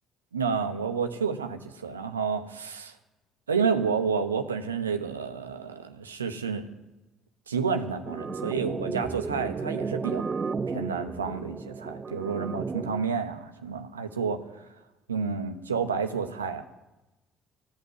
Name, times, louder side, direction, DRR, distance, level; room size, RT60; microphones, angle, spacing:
voice 1, 0.3-2.9 3.5-6.7 7.5-10.2 10.7-14.4 15.1-16.6, right 6 dB, 90° right, 7 dB, 0.9 m, -30 dB
sound 1, 8.1-13.1, right 4 dB, 30° right, 0.7 m, -33 dB
15.0 x 8.5 x 9.3 m, 1.0 s
hypercardioid pair, 50°, 0 cm